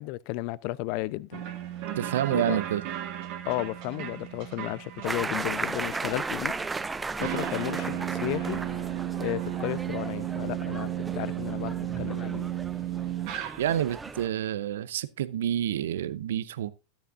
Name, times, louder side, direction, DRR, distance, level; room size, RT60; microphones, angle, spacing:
voice 1, 0.0-1.4 2.3-2.6 3.5-6.6 7.2-8.6 9.2-12.5, left 19 dB, 50° left, 0.4 m, -33 dB
sound 1, 1.3-14.1, right 12 dB, 50° right, 1.9 m, -34 dB
voice 2, 2.0-2.8 13.6-16.7, right 11 dB, 70° right, 0.6 m, -28 dB
sound 2, 5.0-14.3, right 3 dB, 15° right, 0.5 m, -36 dB
13.0 x 8.8 x 2.5 m
figure-of-eight pair, 90°, 0 cm